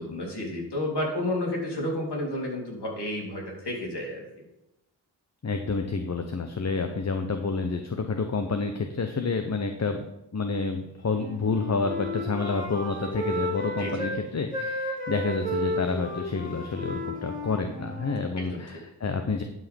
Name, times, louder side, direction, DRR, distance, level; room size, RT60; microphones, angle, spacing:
voice 1, 0.0-4.4 13.8-14.1 18.4-18.6, left 1 dB, 65° left, -2 dB, 3.5 m, -31 dB
voice 2, 5.4-10.1 10.3-19.4, left 4 dB, 40° left, 6 dB, 0.9 m, -29 dB
Wind instrument woodwind instrument, 11.1-14.2 14.5-18.3, left 1 dB, 20° left, 2.6 m, -33 dB
11.0 x 5.2 x 5.3 m, 0.89 s
cardioid pair, 60°, 43 cm